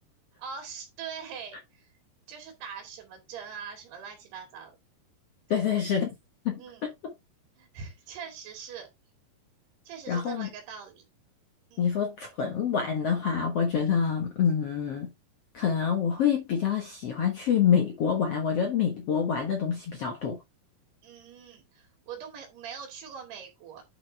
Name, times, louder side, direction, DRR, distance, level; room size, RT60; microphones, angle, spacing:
voice 1, 0.4-1.9 2.3-4.8 5.5-6.0 6.6-6.9 7.6-8.9 9.9-11.0 11.7-11.9 21.0-23.8, right 6 dB, 90° right, 4.4 m, -42 dB
voice 2, 5.5-6.1 6.5-6.9 10.1-10.5 11.8-15.1 15.5-20.4, left 7 dB, 55° left, 1.8 m, -26 dB
10.0 x 5.6 x 3.4 m
omnidirectional pair, 4.5 m